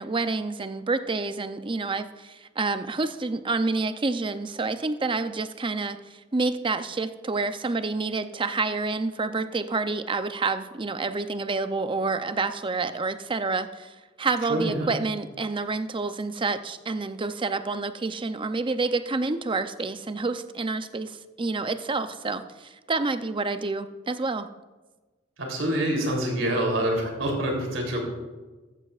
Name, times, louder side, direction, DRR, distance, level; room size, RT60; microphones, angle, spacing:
voice 1, 0.0-24.5, right 3 dB, 25° right, 10 dB, 0.6 m, -28 dB
voice 2, 14.5-14.9 25.4-28.0, right 1 dB, 85° right, 1 dB, 3.4 m, -26 dB
14.5 x 13.5 x 2.5 m, 1.2 s
head